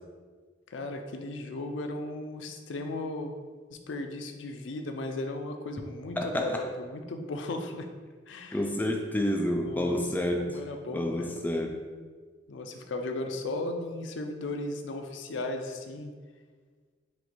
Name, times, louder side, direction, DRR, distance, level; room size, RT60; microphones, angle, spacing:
voice 1, 0.7-3.3 3.7-7.9 8.3-8.6 9.6-10.0 10.4-11.4 12.5-16.1, left 2 dB, 85° left, 5 dB, 0.4 m, -36 dB
voice 2, 6.2-6.6 8.5-10.5 10.9-11.8, left 1 dB, 10° left, 2 dB, 0.3 m, -29 dB
4.3 x 2.5 x 4.1 m, 1.5 s
head